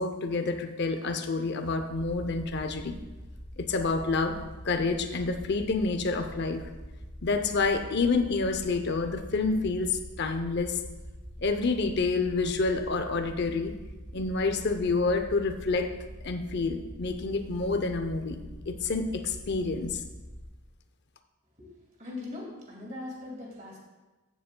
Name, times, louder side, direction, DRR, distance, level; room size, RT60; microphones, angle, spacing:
voice 1, 0.0-3.0 3.6-4.4 4.6-6.6 7.2-10.8 11.4-13.7 14.1-15.9 16.2-20.0, left 3 dB, 50° left, 8 dB, 0.6 m, -28 dB
sound 1, 1.8-20.5, equal, 75° right, 1.6 m, -44 dB
voice 2, 22.0-23.8, left 2 dB, 35° right, -2 dB, 2.1 m, -40 dB
15.0 x 7.0 x 2.2 m, 1.2 s
head